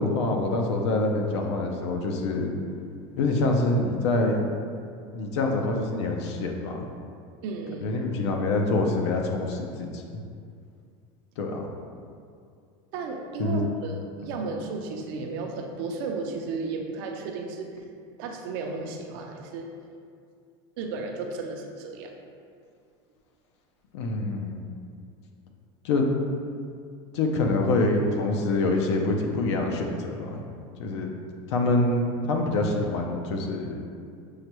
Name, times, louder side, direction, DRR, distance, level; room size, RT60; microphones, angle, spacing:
voice 1, 0.0-2.5 3.2-4.4 5.1-6.8 7.8-10.0 11.4-11.7 13.4-13.6 23.9-24.6 25.8-26.1 27.1-30.4 30.8-31.1 31.5-33.8, left 2 dB, 80° left, 2 dB, 0.6 m, -25 dB
voice 2, 7.4-7.9 12.9-17.7 18.2-19.7 20.8-22.1, right 4 dB, 55° right, 3 dB, 0.5 m, -34 dB
6.4 x 2.2 x 3.0 m, 2.3 s
supercardioid pair, 170°, 15 cm